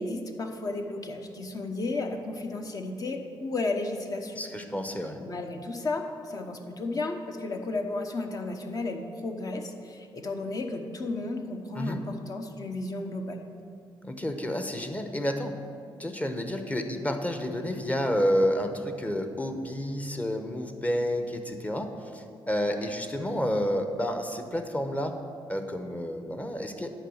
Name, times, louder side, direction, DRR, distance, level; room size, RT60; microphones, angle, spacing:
voice 1, 0.0-4.4 5.2-13.4, left 2 dB, 40° left, 4 dB, 1.0 m, -33 dB
voice 2, 4.4-5.2 11.7-12.0 14.0-15.5 16.0-25.1 25.5-26.9, equal, 15° left, 6 dB, 0.9 m, -30 dB
10.0 x 4.8 x 7.8 m, 2.4 s
cardioid pair, 90°, 9 cm